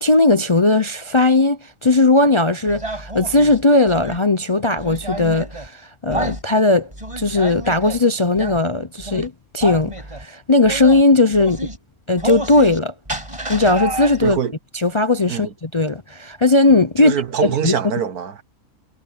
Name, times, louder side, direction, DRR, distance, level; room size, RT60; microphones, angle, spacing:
voice 1, 0.0-6.9 7.2-11.7 12.1-12.9 13.5-14.4 14.7-17.1 17.4-17.7, left 2 dB, 35° left, 0.5 m, -17 dB
sound 1, 2.7-4.2 4.8-5.7 6.1-6.4 6.9-8.0 8.4-8.6 9.0-9.3 9.6-10.3 10.7-11.0 11.3-11.8 12.2-12.8 13.1-14.4, right 1 dB, 20° right, 5.7 m, -29 dB
voice 2, 14.2-14.5 15.3-15.5 17.0-18.4, right 8 dB, 90° right, 1.7 m, -24 dB
omnidirectional pair, 1.5 m